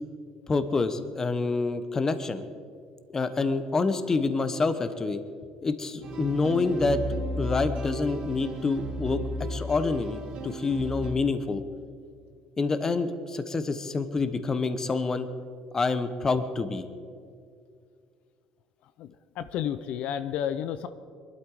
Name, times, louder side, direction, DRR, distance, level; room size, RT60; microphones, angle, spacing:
voice 1, 0.5-2.5 3.1-5.2 5.6-7.0 7.4-9.2 9.5-11.6 12.6-15.3 15.7-16.9, left 3 dB, 25° left, 11 dB, 1.0 m, -27 dB
sound 1, 6.0-11.1, right 1 dB, 60° right, 3.2 m, -34 dB
voice 2, 19.0-20.9, left 9 dB, 65° left, 11 dB, 0.6 m, -31 dB
22.0 x 12.5 x 4.9 m, 2.2 s
cardioid pair, 125°, 2 cm